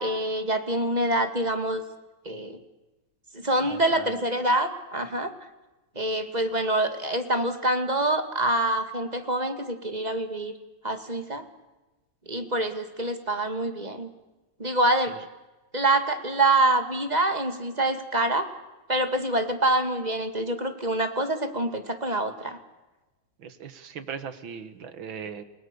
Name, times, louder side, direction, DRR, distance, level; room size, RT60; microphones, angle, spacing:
voice 1, 0.0-1.8 2.3-2.6 3.4-5.3 6.0-10.5 10.8-11.4 12.3-14.1 14.6-15.1 15.7-18.5 18.9-22.6, right 1 dB, 20° right, 7 dB, 2.2 m, -26 dB
voice 2, 3.6-4.1 15.1-15.2 23.4-25.4, right 7 dB, 85° right, 12 dB, 2.4 m, -39 dB
29.5 x 19.0 x 7.0 m, 1.1 s
omnidirectional pair, 2.1 m